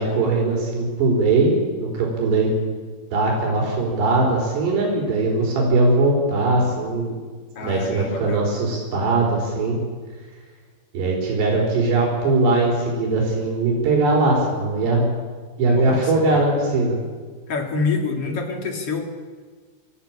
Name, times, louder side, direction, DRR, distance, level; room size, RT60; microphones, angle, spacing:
voice 1, 0.0-1.5 1.8-2.6 3.1-7.2 7.6-9.8 10.9-15.0 15.6-16.9, right 2 dB, 90° right, -1 dB, 6.6 m, -20 dB
voice 2, 7.6-8.5 15.7-16.5 17.5-19.0, left 4 dB, 40° left, 4 dB, 2.8 m, -27 dB
27.5 x 14.5 x 8.9 m, 1.5 s
omnidirectional pair, 4.7 m